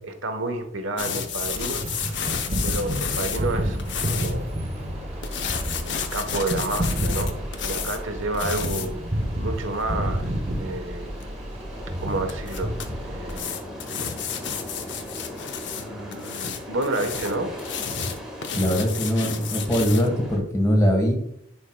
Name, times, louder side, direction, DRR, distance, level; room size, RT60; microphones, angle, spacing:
voice 1, 0.0-1.8 2.6-3.8 4.1-4.4 5.8-7.3 7.6-9.1 9.4-10.3 10.6-11.2 12.0-12.8 13.0-13.6 15.8-17.5, right 2 dB, 85° right, 6 dB, 1.1 m, -30 dB
sound 1, 1.0-4.3 5.2-8.0 8.3-8.9 11.2-11.3 12.3-12.9 13.3-15.8 16.1-20.1, left 7 dB, 60° left, 0.7 m, -31 dB
sound 2, 1.4-13.4, equal, 30° right, 0.9 m, -30 dB
sound 3, 1.8-20.4, equal, 5° right, 1.5 m, -40 dB
voice 2, 18.5-21.2, equal, 15° left, 2 dB, 1.4 m, -21 dB
10.0 x 4.5 x 2.2 m, 0.74 s
head